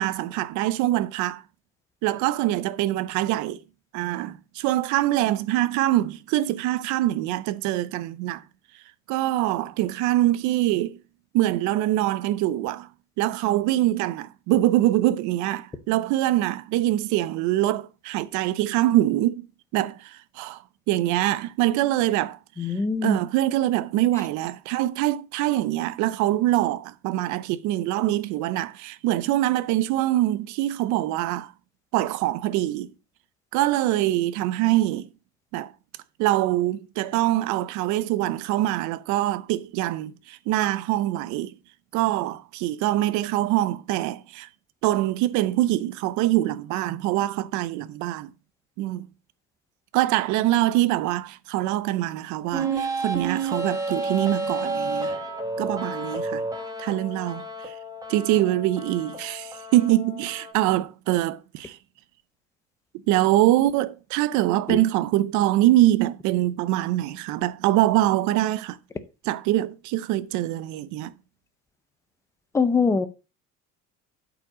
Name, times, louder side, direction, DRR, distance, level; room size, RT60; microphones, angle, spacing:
voice 1, 0.0-1.4 2.0-3.6 3.9-8.4 9.1-11.0 11.3-12.9 13.2-19.5 19.7-20.6 20.9-22.4 23.0-31.5 31.9-32.9 33.5-35.1 35.5-35.7 36.2-41.5 41.9-44.5 44.8-48.3 48.8-49.1 49.9-55.1 55.6-56.4 56.8-57.7 58.1-61.8 63.1-68.8 69.2-71.1, right 15 dB, 75° right, 0.7 m, -24 dB
voice 2, 22.6-23.2 64.7-64.8 72.5-73.1, left 4 dB, 10° left, 0.6 m, -22 dB
sound 1, 52.5-60.5, right 3 dB, 10° right, 1.5 m, -30 dB
8.4 x 5.2 x 6.1 m
cardioid pair, 175°, 30 cm